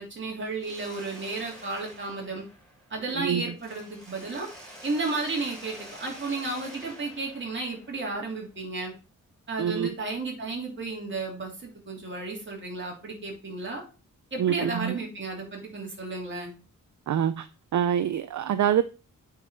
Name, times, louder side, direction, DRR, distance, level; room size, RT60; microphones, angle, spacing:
voice 1, 0.0-2.4 2.9-4.5 4.8-8.9 9.5-13.8 14.3-16.5, right 3 dB, 35° right, 3.1 m, -33 dB
Mechanisms, 0.6-3.2 3.6-8.4, right 1 dB, ahead, 4.4 m, -47 dB
voice 2, 9.6-9.9 14.4-14.9 17.1-17.5 17.7-18.8, right 9 dB, 65° right, 0.5 m, -25 dB
8.5 x 4.9 x 4.3 m
wide cardioid pair, 165°, 32 cm